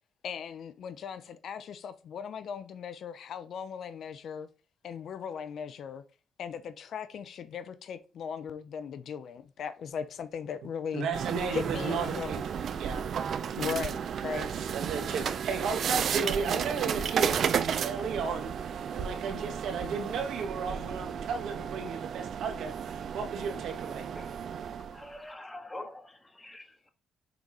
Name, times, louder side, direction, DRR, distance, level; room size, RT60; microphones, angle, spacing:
voice 1, 0.2-4.5 4.8-6.0 6.4-11.1 11.5-12.4 13.6-14.5, left 7 dB, 65° left, 0.6 m, -38 dB
voice 2, 10.9-13.0 14.3-24.1, right 5 dB, 75° right, 1.7 m, -34 dB
sound 1, 11.1-25.1, right 7 dB, 60° right, 0.5 m, -33 dB
voice 3, 24.9-26.9, left 1 dB, 15° left, 1.6 m, -45 dB
6.8 x 3.9 x 4.8 m
cardioid pair, 90°, 0 cm